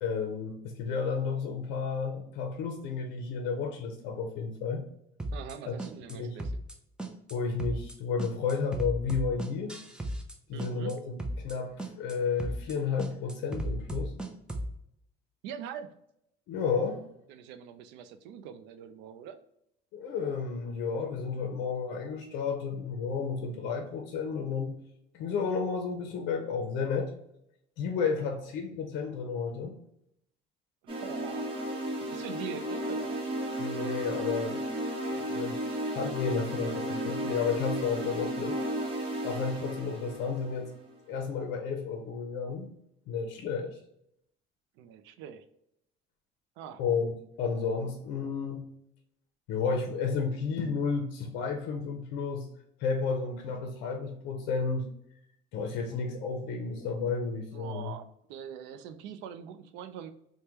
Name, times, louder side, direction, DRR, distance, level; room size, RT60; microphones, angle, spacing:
voice 1, 0.0-4.8 5.7-5.8 6.1-6.4 7.3-9.8 10.5-11.2 11.4-14.1 16.5-17.0 19.9-24.7 25.1-27.1 27.8-29.7 33.6-34.8 35.1-38.6 39.2-40.7 41.1-42.7 43.1-43.8 46.8-48.7 49.5-52.5 52.8-54.9 55.5-57.9, left 5 dB, 70° left, 4 dB, 0.6 m, -32 dB
sound 1, 5.2-5.5 5.8-6.1 6.4-6.7 7.0-7.3 7.6-7.9 8.2-10.3 10.6-10.9 11.2-11.5 11.8-12.1 12.4-12.7 13.0-14.7, right 1 dB, 5° right, 0.4 m, -35 dB
voice 2, 5.3-6.5 10.5-10.9 15.4-15.9 17.3-19.4 28.1-28.3 30.8-31.5 32.1-33.2 44.8-45.4 46.6-46.8 57.5-60.1, right 8 dB, 75° right, 10 dB, 0.4 m, -43 dB
sound 2, 30.9-41.0, right 1 dB, 25° right, 0.9 m, -34 dB
3.3 x 2.2 x 2.9 m, 0.75 s
cardioid pair, 125°, 19 cm